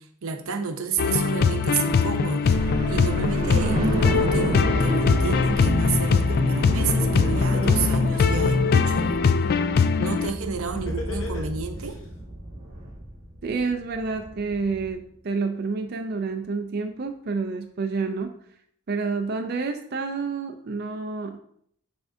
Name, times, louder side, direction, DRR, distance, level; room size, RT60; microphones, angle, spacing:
voice 1, 0.2-9.2 10.0-12.0, right 5 dB, 90° right, 6 dB, 0.7 m, -30 dB
sound 1, 1.0-10.3, left 5 dB, 45° left, 0.3 m, -22 dB
sound 2, 2.5-14.9, right 1 dB, 35° right, 1.7 m, -30 dB
Laughter, 7.0-7.1 7.5-9.0 10.7-11.9, left 3 dB, 65° left, 1.2 m, -35 dB
voice 2, 13.4-18.3 18.9-21.4, right 4 dB, 50° right, 4 dB, 0.5 m, -29 dB
10.0 x 3.4 x 2.7 m, 0.67 s
head